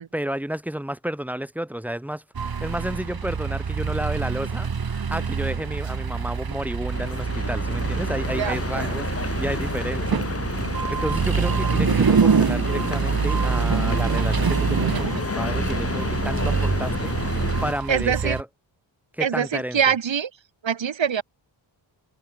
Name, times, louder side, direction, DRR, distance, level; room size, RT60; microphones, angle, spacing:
voice 1, 0.0-10.6 10.9-17.1 17.6-18.5 19.1-19.8, right 1 dB, 5° right, 2.9 m, -31 dB
sound 1, 2.3-18.4, right 6 dB, 50° right, 3.2 m, -25 dB
sound 2, 6.9-17.7, left 4 dB, 30° left, 1.8 m, -30 dB
voice 2, 8.4-8.9 17.9-18.4 19.2-20.3 20.6-21.2, right 7 dB, 70° right, 3.2 m, -24 dB
wide cardioid pair, 125°, 47 cm